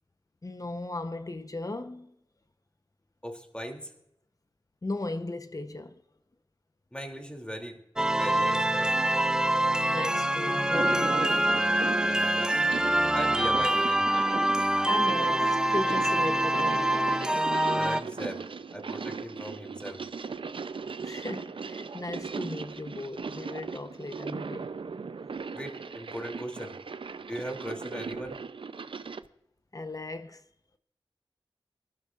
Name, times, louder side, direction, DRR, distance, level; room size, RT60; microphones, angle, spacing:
voice 1, 0.4-2.1 4.8-6.0 9.9-11.5 14.8-16.9 21.0-24.7 29.7-30.4, left 2 dB, 40° left, 0.9 m, -36 dB
voice 2, 3.2-3.9 6.9-7.8 8.1-8.9 13.1-14.1 17.7-18.4 18.7-20.0 25.5-26.8 27.2-28.4, equal, 10° left, 2.8 m, -38 dB
sound 1, 8.0-18.0, right 1 dB, 10° right, 0.6 m, -25 dB
sound 2, 10.6-29.3, right 5 dB, 70° right, 0.6 m, -38 dB
25.0 x 12.5 x 2.5 m
wide cardioid pair, 60°, 9 cm